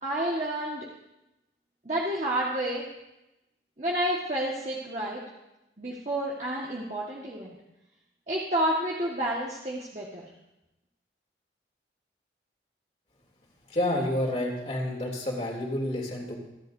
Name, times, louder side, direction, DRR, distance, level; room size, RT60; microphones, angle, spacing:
voice 1, 0.0-0.9 1.9-2.9 3.8-5.2 5.8-7.5 8.3-10.3, right 1 dB, 40° right, -4 dB, 1.6 m, -30 dB
voice 2, 13.7-16.4, left 1 dB, 35° left, -1 dB, 3.0 m, -29 dB
27.5 x 11.0 x 2.7 m, 0.95 s
head